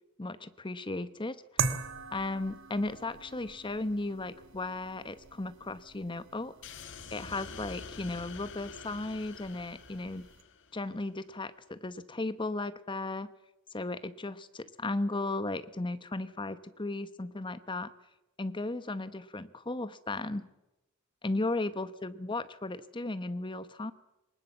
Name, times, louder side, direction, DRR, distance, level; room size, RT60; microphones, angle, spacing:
voice 1, 0.2-1.4 2.1-6.5 7.1-10.3 10.7-13.3 13.7-17.9 18.4-20.5 21.2-23.9, left 2 dB, 20° left, 13 dB, 0.9 m, -35 dB
sound 1, 1.6-10.4, right 5 dB, 60° right, 1.5 m, -41 dB
sound 2, 6.6-11.0, left 5 dB, 60° left, 1.6 m, -47 dB
22.5 x 20.0 x 7.3 m, 0.99 s
head